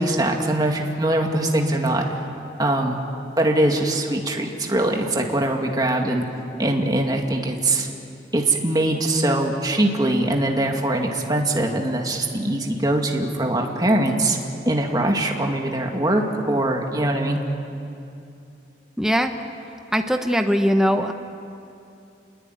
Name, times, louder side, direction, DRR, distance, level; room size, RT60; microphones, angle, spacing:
voice 1, 0.0-2.0 2.6-3.0 3.4-6.3 6.6-7.9 8.3-14.4 14.7-17.4, right 1 dB, 20° right, 1 dB, 2.2 m, -22 dB
voice 2, 19.0-19.3 19.9-21.1, equal, 5° right, 5 dB, 1.1 m, -20 dB
29.0 x 22.0 x 9.3 m, 2.7 s
head